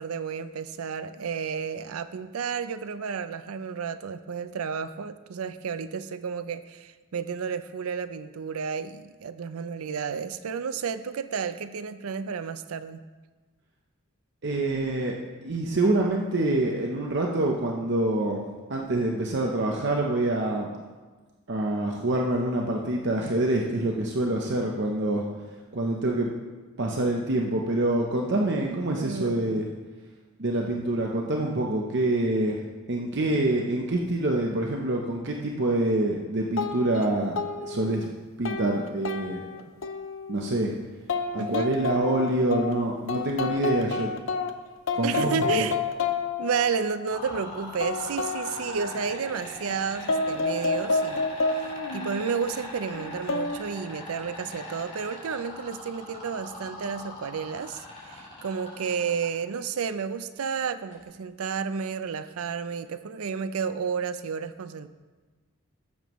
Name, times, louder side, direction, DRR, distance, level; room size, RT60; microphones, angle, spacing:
voice 1, 0.0-13.0 28.6-29.6 41.4-41.7 45.0-45.8 46.4-51.3 51.9-64.9, right 6 dB, 90° right, 12 dB, 0.5 m, -31 dB
voice 2, 14.4-15.1 15.4-18.4 18.7-20.7 21.5-25.2 25.7-26.3 26.8-29.7 30.4-32.6 32.9-38.1 38.4-39.6 40.3-40.7 41.3-44.1 44.9-45.6, right 1 dB, 55° right, 0 dB, 0.8 m, -26 dB
sound 1, 36.6-37.1 37.4-38.0 38.4-40.6 41.1-42.7 43.1-44.5 44.9-47.4 47.8-49.5 50.1-52.3 52.9-53.6, left 4 dB, 65° left, 0.6 m, -30 dB
sound 2, 47.1-59.2 60.9-61.0, left 2 dB, 35° left, 3.2 m, -40 dB
15.5 x 7.0 x 3.1 m, 1.4 s
head